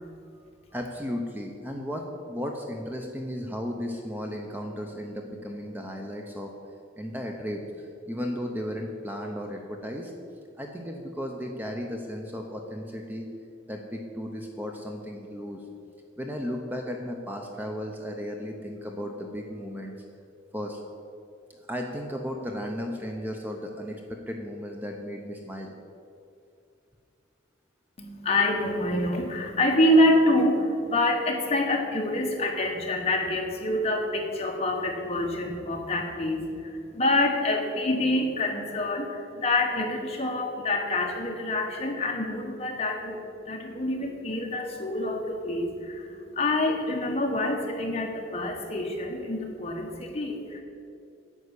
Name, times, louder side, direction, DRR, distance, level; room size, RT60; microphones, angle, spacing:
voice 1, 0.7-6.5 7.0-10.1 10.6-13.3 13.7-15.6 16.2-19.9 20.5-20.8 21.5-25.7, equal, 10° right, 2 dB, 0.7 m, -35 dB
voice 2, 28.0-50.6, left 1 dB, 30° left, 1 dB, 1.3 m, -26 dB
9.7 x 5.7 x 8.2 m, 2.5 s
head